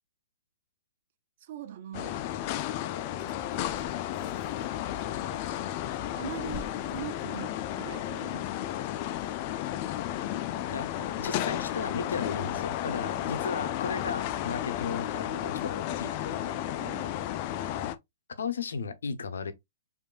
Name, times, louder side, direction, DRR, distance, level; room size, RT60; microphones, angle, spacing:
voice 1, 1.4-2.2 6.1-8.5 10.5-11.3 13.0-13.3 16.8-17.2, right 11 dB, 55° right, 0.6 m, -43 dB
sound 1, 1.9-18.0, left 12 dB, 40° left, 0.4 m, -33 dB
Drawer open or close, 2.7-5.0 5.5-7.5, left 3 dB, 15° left, 1.2 m, -50 dB
voice 2, 11.2-16.6 18.4-19.5, left 5 dB, 75° left, 0.6 m, -35 dB
5.1 x 2.6 x 2.2 m
hypercardioid pair, 120°, 0 cm